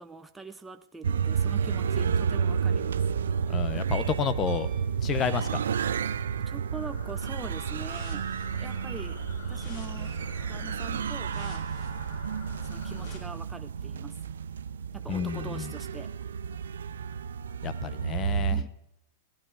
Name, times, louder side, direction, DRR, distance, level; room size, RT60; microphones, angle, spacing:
voice 1, 0.0-3.0 6.4-8.3 8.6-9.2 9.5-10.2 10.5-11.7 12.6-14.2 14.9-16.1 18.5-18.7, right 4 dB, 10° right, 7 dB, 0.7 m, -43 dB
sound 1, 1.0-18.6, right 7 dB, 85° right, 0.6 m, -31 dB
voice 2, 3.5-4.7 5.0-5.9 15.1-15.7 17.6-18.6, left 8 dB, 30° left, 14 dB, 1.0 m, -31 dB
Piano, 4.5-6.0 8.4-8.5, right 12 dB, 45° right, 1.7 m, -55 dB
sound 2, 6.7-13.2, left 3 dB, 50° left, 5.6 m, -45 dB
16.5 x 11.5 x 4.8 m, 0.84 s
hypercardioid pair, 130°, 0 cm